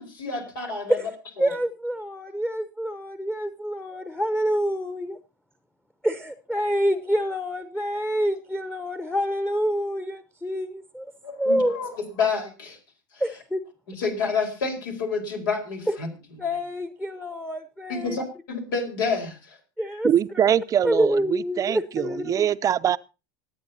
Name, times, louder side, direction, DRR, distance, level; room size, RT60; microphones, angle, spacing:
voice 1, 0.0-1.0 1.4-1.5 11.2-12.8 13.1-13.2 13.9-16.1 17.9-19.6, left 5 dB, 85° left, 3 dB, 4.5 m, -29 dB
voice 2, 1.0-5.2 6.0-11.8 13.2-13.6 15.9-16.0 16.4-18.2 19.8-20.1 20.5-20.6 20.8-22.5, equal, 5° left, 9 dB, 0.9 m, -27 dB
voice 3, 20.0-23.0, right 9 dB, 30° right, 14 dB, 0.5 m, -23 dB
25.5 x 8.8 x 2.9 m, 0.29 s
supercardioid pair, 105°, 11 cm